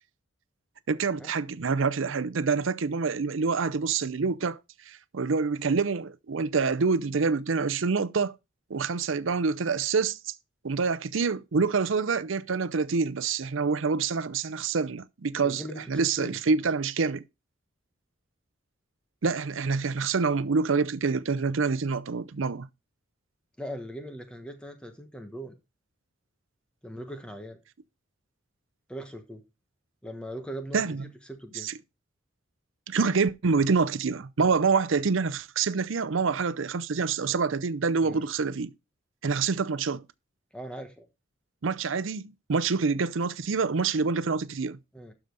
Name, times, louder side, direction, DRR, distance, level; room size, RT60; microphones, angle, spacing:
voice 1, 0.9-4.6 4.9-8.3 8.7-10.3 10.6-17.2 19.2-22.7 30.7-31.0 31.6-31.7 32.9-38.7 39.2-40.0 41.6-44.8, right 4 dB, 75° right, 0.6 m, -26 dB
voice 2, 15.4-15.8 16.2-16.4 23.6-25.6 26.8-27.6 28.9-29.4 30.0-31.7 38.0-38.3 40.5-41.1 44.9-45.1, equal, 5° left, 1.2 m, -40 dB
12.0 x 5.0 x 3.9 m
head